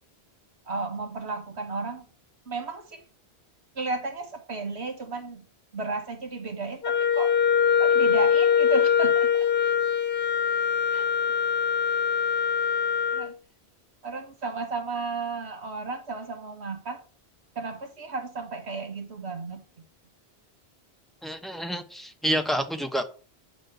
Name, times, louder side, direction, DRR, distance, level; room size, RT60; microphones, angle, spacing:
voice 1, 0.7-2.1 2.5-3.0 3.8-5.5 5.7-7.3 7.8-9.5 10.9-11.1 13.1-13.3 14.0-17.0 17.6-19.6, right 3 dB, 90° right, 5 dB, 1.8 m, -33 dB
Wind instrument woodwind instrument, 6.8-13.3, left 7 dB, 60° left, 1.1 m, -23 dB
voice 2, 21.2-23.1, equal, ahead, 6 dB, 1.0 m, -28 dB
9.9 x 3.9 x 6.7 m, 0.37 s
omnidirectional pair, 1.1 m